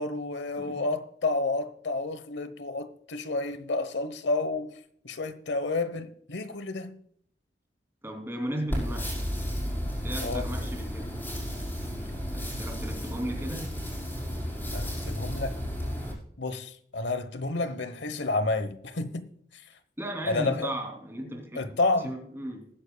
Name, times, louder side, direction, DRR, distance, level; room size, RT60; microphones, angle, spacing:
voice 1, 0.0-4.7 5.0-7.0 10.2-10.5 14.7-15.6 16.4-19.2 20.2-20.7 21.5-22.1, left 3 dB, 85° left, 1.0 m, -30 dB
voice 2, 8.0-9.2 10.0-11.2 12.3-13.8 20.0-21.7 22.0-22.7, right 1 dB, 15° right, 2.9 m, -36 dB
sound 1, 8.7-16.1, equal, 10° left, 4.9 m, -33 dB
20.0 x 10.0 x 2.3 m
head